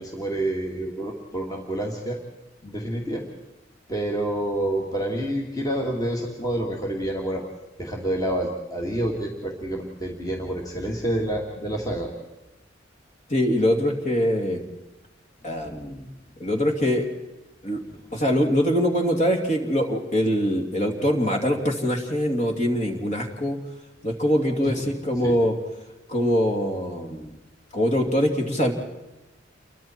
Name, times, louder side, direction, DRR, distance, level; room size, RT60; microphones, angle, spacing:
voice 1, 0.0-2.2 2.6-3.2 3.9-7.4 7.8-12.1 25.2-25.3, right 1 dB, 20° left, 0 dB, 2.2 m, -28 dB
voice 2, 13.3-14.6 15.4-16.1 16.4-17.1 17.6-17.8 18.1-23.6 24.0-25.5 26.1-27.3 27.7-28.7, equal, 40° left, 2 dB, 2.9 m, -23 dB
29.0 x 23.0 x 4.5 m, 1.0 s
head